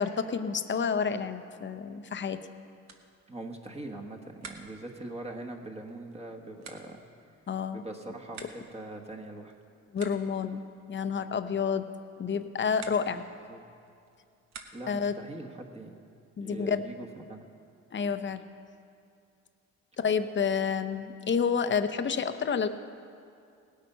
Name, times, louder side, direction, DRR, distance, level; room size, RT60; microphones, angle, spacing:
voice 1, 0.0-2.4 7.5-7.8 9.9-11.9 12.2-13.2 14.9-15.1 16.4-16.9 17.9-18.4 20.0-22.7, left 6 dB, 40° left, 10 dB, 0.7 m, -29 dB
sound 1, 2.8-15.1, right 4 dB, 60° right, 1.3 m, -53 dB
voice 2, 3.3-7.0 7.7-9.5 13.1-13.6 14.7-15.9 16.4-17.4, right 2 dB, 20° right, 1 dB, 1.4 m, -42 dB
18.0 x 8.6 x 5.5 m, 2.4 s
cardioid pair, 90°, 30 cm